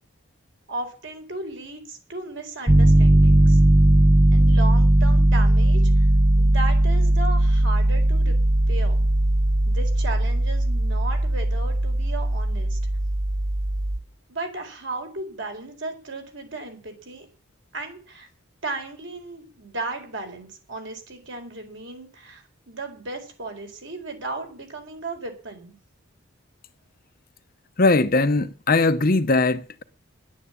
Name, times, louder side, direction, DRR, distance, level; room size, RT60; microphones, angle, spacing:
voice 1, 0.7-3.6 4.3-6.0 6.4-8.4 8.7-9.0 9.7-12.8 14.3-17.3 17.7-18.3 18.6-25.7, right 2 dB, 60° right, 4.4 m, -35 dB
Piano, 2.7-14.0, right 1 dB, 15° right, 0.7 m, -18 dB
voice 2, 27.8-29.8, left 3 dB, 45° left, 0.8 m, -20 dB
11.0 x 9.3 x 8.5 m
head